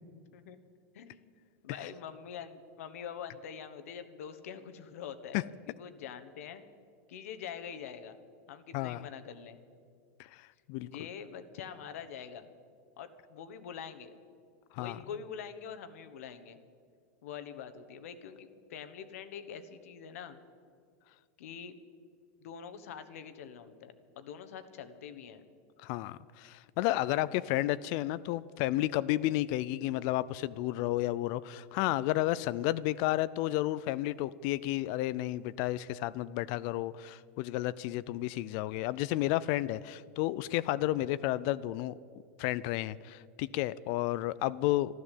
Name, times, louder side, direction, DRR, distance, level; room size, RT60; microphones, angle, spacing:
voice 1, 0.9-1.3 1.6-6.6 7.1-8.2 8.5-9.6 10.8-12.5 13.0-14.1 14.8-16.6 17.2-20.4 21.4-21.8 22.4-25.4, left 7 dB, 80° left, 10 dB, 1.3 m, -45 dB
voice 2, 8.7-9.1 10.2-10.4 10.7-10.9 14.7-15.0 25.8-41.9 42.4-45.0, left 16 dB, 50° left, 18 dB, 0.4 m, -32 dB
12.5 x 12.5 x 8.3 m, 2.2 s
supercardioid pair, 140°, 8 cm